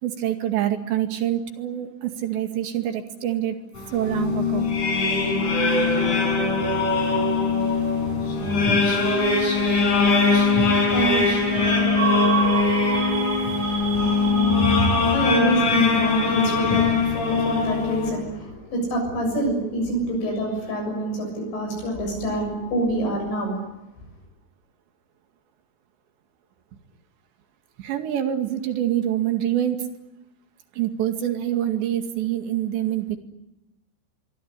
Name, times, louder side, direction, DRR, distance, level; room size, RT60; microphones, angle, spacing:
voice 1, 0.0-3.6 3.9-4.7 27.8-29.9 30.7-33.2, right 11 dB, 70° right, 6 dB, 4.3 m, -25 dB
sound 1, 3.8-18.1, left 4 dB, 40° left, 6.5 m, -21 dB
voice 2, 7.7-9.2 9.5-23.5, right 1 dB, 70° left, 2 dB, 9.5 m, -28 dB
sound 2, 11.5-15.7, right 6 dB, 85° right, 5.1 m, -29 dB
24.5 x 24.0 x 10.0 m, 0.95 s
omnidirectional pair, 5.5 m